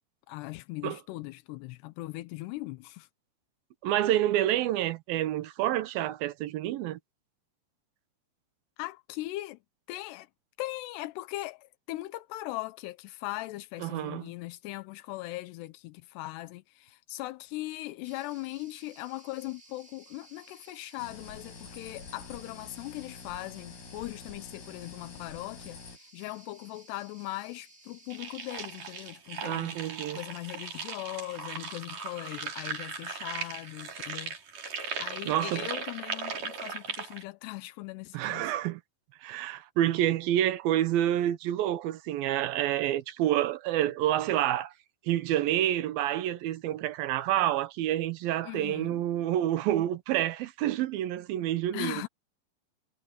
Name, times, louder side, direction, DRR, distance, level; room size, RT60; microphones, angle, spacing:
voice 1, 0.3-3.1 8.8-9.6 9.9-10.3 10.6-34.4 35.0-38.6 48.4-49.0 51.7-52.1, left 18 dB, 85° left, 2.8 m, -39 dB
voice 2, 3.8-7.0 13.8-14.3 29.4-30.2 35.3-35.7 38.1-38.8 39.2-44.7 45.1-52.0, right 12 dB, 75° right, 2.4 m, -28 dB
sound 1, 18.0-29.1, right 2 dB, 15° right, 3.8 m, -57 dB
sound 2, 21.0-26.0, left 5 dB, 65° left, 6.9 m, -47 dB
sound 3, 28.1-37.2, right 5 dB, 50° right, 5.2 m, -38 dB
omnidirectional pair, 4.8 m